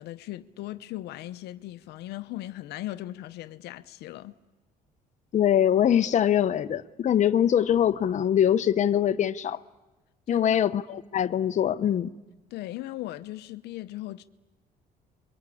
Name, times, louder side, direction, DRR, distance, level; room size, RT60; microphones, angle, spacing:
voice 1, 0.0-4.3 10.3-10.6 12.5-14.2, left 15 dB, 80° left, 0.8 m, -38 dB
voice 2, 5.3-9.6 10.3-12.1, left 10 dB, 45° left, 0.9 m, -23 dB
27.5 x 23.5 x 8.5 m
cardioid pair, 110°, 17 cm